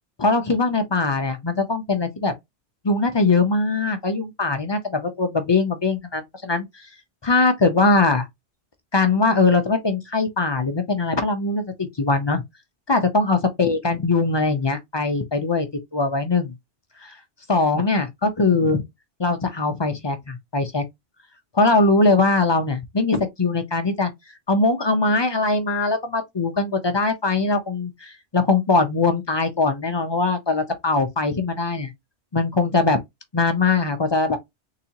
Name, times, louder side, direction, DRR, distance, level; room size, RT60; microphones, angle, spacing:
voice 1, 0.2-2.3 2.8-6.9 7.2-8.3 8.9-12.4 12.9-15.7 15.9-16.5 17.0-17.2 17.5-18.8 19.2-20.8 21.5-24.1 24.5-31.9 32.3-33.0 33.3-34.4, left 3 dB, 40° left, 0.4 m, -21 dB
3.9 x 2.7 x 2.8 m
omnidirectional pair, 1.2 m